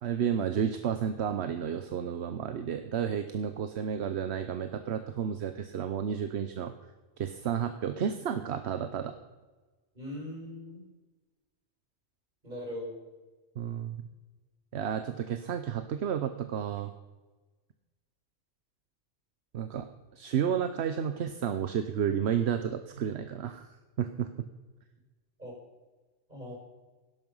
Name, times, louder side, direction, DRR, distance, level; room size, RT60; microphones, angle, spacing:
voice 1, 0.0-6.7 7.2-9.1 13.6-14.0 14.7-16.9 19.5-19.9 20.2-23.7 24.0-24.3, right 8 dB, 75° right, 9 dB, 1.0 m, -31 dB
voice 2, 9.9-10.8 12.4-13.0 25.4-25.5 26.3-26.6, left 1 dB, 40° right, -2 dB, 6.3 m, -40 dB
17.0 x 11.0 x 5.5 m, 1.2 s
omnidirectional pair, 1.1 m